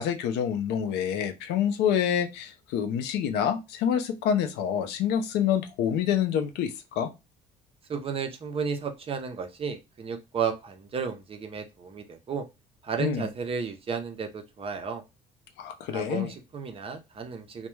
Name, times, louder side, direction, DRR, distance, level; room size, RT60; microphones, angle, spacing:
voice 1, 0.0-7.1 13.0-13.3 15.6-16.3, left 8 dB, 85° left, 8 dB, 0.5 m, -27 dB
voice 2, 7.9-12.4 12.8-15.0 15.9-17.7, right 6 dB, 35° right, 6 dB, 0.5 m, -33 dB
2.1 x 2.1 x 3.0 m, 0.25 s
cardioid pair, 110°, 17 cm